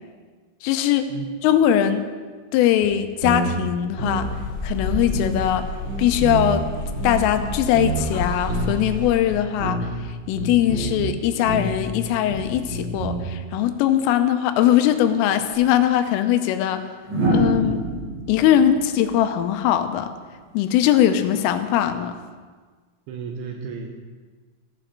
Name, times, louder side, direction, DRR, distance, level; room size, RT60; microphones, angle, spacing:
voice 1, 0.6-1.1 1.4-2.0 2.5-4.3 4.6-5.7 6.0-6.7 7.0-16.9 17.3-17.8 18.3-20.1 20.5-22.2, left 11 dB, 85° left, 8 dB, 3.3 m, -21 dB
sound 1, 2.8-2.9 3.2-4.4 4.7-5.5 5.8-8.9 9.2-10.1 10.3-11.1 11.5-13.3, right 2 dB, 25° right, 3.1 m, -28 dB
sound 2, 4.1-9.1, left 2 dB, 35° left, 2.7 m, -31 dB
sound 3, 15.5-15.7 17.1-20.1 21.7-22.0, right 1 dB, 60° right, 7.2 m, -26 dB
voice 2, 23.1-24.0, right 5 dB, 75° right, 2 dB, 3.2 m, -33 dB
14.5 x 9.0 x 6.5 m, 1.5 s
omnidirectional pair, 5.9 m